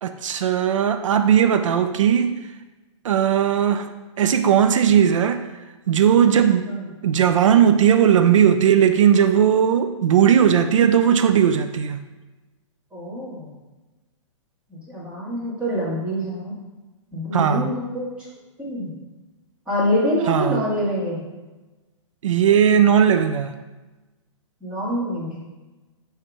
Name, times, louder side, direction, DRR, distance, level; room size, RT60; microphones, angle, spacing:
voice 1, 0.0-2.3 3.0-3.9 4.2-5.5 5.9-6.7 7.0-12.0 17.3-17.7 20.3-20.6 22.2-23.5, right 8 dB, 75° right, 0.5 m, -17 dB
voice 2, 12.9-13.5 14.7-16.5 17.1-18.1 18.6-18.9 19.7-21.2 24.6-25.4, equal, 5° right, 1.8 m, -25 dB
6.3 x 3.2 x 5.9 m
hypercardioid pair, 165°, 16 cm